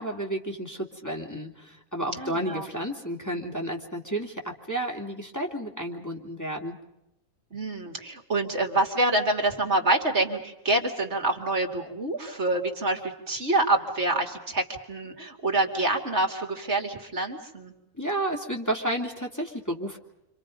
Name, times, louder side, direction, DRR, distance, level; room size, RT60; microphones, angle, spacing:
voice 1, 0.0-6.8 18.0-20.0, right 1 dB, 10° left, 0 dB, 2.7 m, -31 dB
voice 2, 2.2-2.7 7.5-17.7, right 2 dB, 55° right, 3 dB, 2.7 m, -26 dB
29.5 x 26.0 x 5.3 m, 0.87 s
omnidirectional pair, 1.4 m